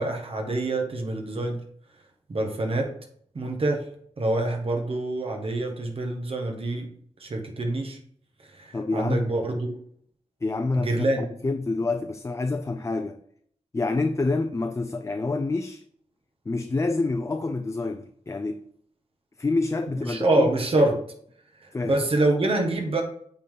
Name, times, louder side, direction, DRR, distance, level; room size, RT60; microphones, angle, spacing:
voice 1, 0.0-1.6 2.3-2.9 3.3-3.8 4.2-6.9 7.2-8.0 8.6-9.7 10.8-11.3 20.1-21.0 21.8-23.0, right 2 dB, 50° right, 1.7 m, -25 dB
voice 2, 8.7-9.3 10.4-13.2 13.7-15.8 16.5-18.6 19.4-20.5 21.7-22.0, left 3 dB, 25° left, 0.5 m, -27 dB
8.3 x 3.9 x 3.9 m
cardioid pair, 80°, 12 cm